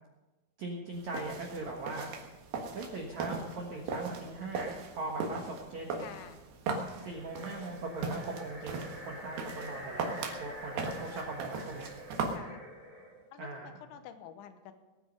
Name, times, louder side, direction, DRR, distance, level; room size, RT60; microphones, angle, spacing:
voice 1, 0.6-2.1 2.7-6.0 7.0-11.9 13.4-13.7, right 2 dB, 85° right, 0 dB, 1.6 m, -40 dB
sound 1, 0.9-12.4, right 4 dB, 65° right, 2.9 m, -39 dB
voice 2, 6.0-6.4 12.3-12.6 13.3-14.7, left 9 dB, 75° left, 9 dB, 3.1 m, -48 dB
sound 2, 6.9-13.2, equal, 15° right, 2.1 m, -47 dB
21.0 x 9.4 x 5.3 m, 1.1 s
omnidirectional pair, 5.9 m